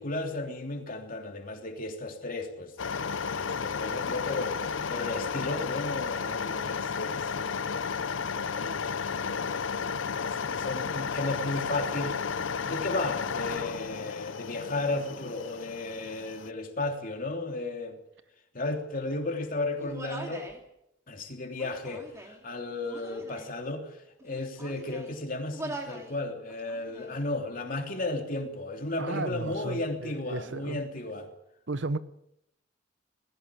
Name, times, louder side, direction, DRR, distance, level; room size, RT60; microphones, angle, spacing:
voice 1, 0.0-9.9 10.2-12.3 12.6-18.0 18.5-20.5 21.1-24.0 24.2-31.3, left 2 dB, 45° left, 3.2 m, -34 dB
sound 1, 2.8-16.5, left 6 dB, 80° left, 0.7 m, -33 dB
Human voice, 19.8-20.6 21.5-22.4 22.9-23.5 24.2-25.2 25.5-26.1 26.5-27.2, right 1 dB, 15° right, 3.2 m, -42 dB
voice 2, 29.0-30.8 31.7-32.0, right 3 dB, 65° right, 1.0 m, -34 dB
20.0 x 16.5 x 8.5 m
head